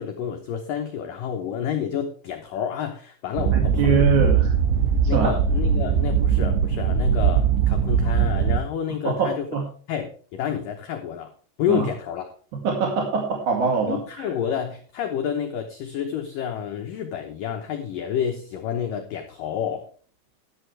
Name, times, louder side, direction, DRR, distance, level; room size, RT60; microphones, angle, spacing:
voice 1, 0.0-4.1 5.1-9.5 9.9-11.3 11.6-12.3 13.9-19.9, left 8 dB, 90° left, 4 dB, 1.9 m, -29 dB
sound 1, 3.4-8.6, right 7 dB, 80° right, 3.2 m, -20 dB
voice 2, 3.5-4.5 5.1-5.3 9.0-9.7 11.7-11.9 12.5-14.3, right 5 dB, 50° right, 1 dB, 2.8 m, -23 dB
12.5 x 11.0 x 3.3 m, 0.42 s
omnidirectional pair, 5.5 m